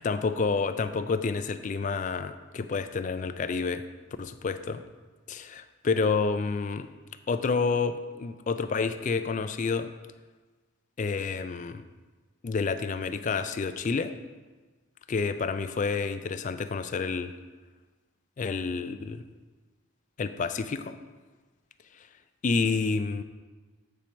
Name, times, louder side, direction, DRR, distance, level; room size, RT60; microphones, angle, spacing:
voice 1, 0.0-3.8 4.2-4.8 5.3-6.9 7.3-9.9 11.0-11.9 12.4-14.1 15.1-17.3 18.4-19.2 20.2-21.0 21.9-22.1 22.4-23.2, left 4 dB, 35° left, 11 dB, 0.3 m, -29 dB
8.4 x 4.4 x 5.1 m, 1.3 s
head